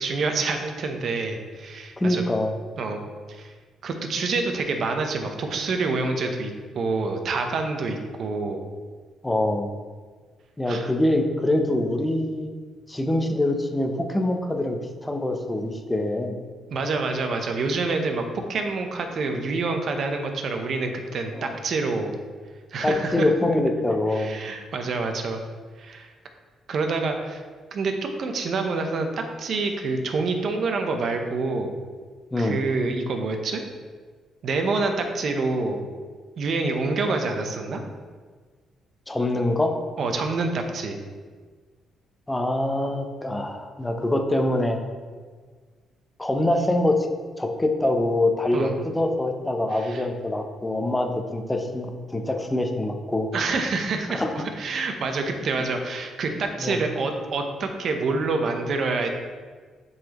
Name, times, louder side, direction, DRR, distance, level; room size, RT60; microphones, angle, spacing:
voice 1, 0.0-2.2 2.8-3.0 3.3-3.5 3.8-8.6 10.7-10.9 16.7-22.1 22.7-23.3 24.1-25.4 25.8-26.1 26.7-27.4 27.7-31.7 32.4-33.6 34.4-35.9 36.4-37.8 40.0-41.0 48.5-48.8 49.7-50.0 53.3-59.1, right 3 dB, 60° right, 4 dB, 0.8 m, -27 dB
voice 2, 2.0-2.5 9.2-9.7 10.6-12.5 12.9-16.4 21.3-21.5 22.8-24.4 32.3-32.6 39.1-39.8 42.3-44.8 46.2-47.1 47.4-53.3 54.1-54.3 56.6-56.8, left 1 dB, 15° left, 4 dB, 0.7 m, -24 dB
7.6 x 4.1 x 3.0 m, 1.5 s
cardioid pair, 90°, 0 cm